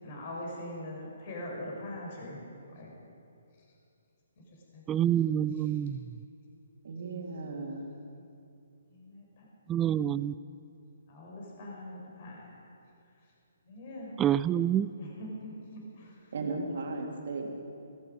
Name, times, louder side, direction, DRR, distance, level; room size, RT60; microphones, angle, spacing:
voice 1, 0.0-2.4 2.7-2.9 4.7-4.8 5.5-5.7 8.9-9.4 11.1-12.5 13.6-14.1 15.0-16.2, left 1 dB, 45° left, -1 dB, 4.2 m, -42 dB
voice 2, 4.9-6.0 9.7-10.3 14.2-14.9, right 10 dB, 15° right, 17 dB, 0.3 m, -27 dB
voice 3, 6.8-7.9 16.3-17.5, right 3 dB, 55° right, 1 dB, 2.3 m, -36 dB
17.0 x 14.0 x 5.3 m, 2.5 s
figure-of-eight pair, 135°, 0 cm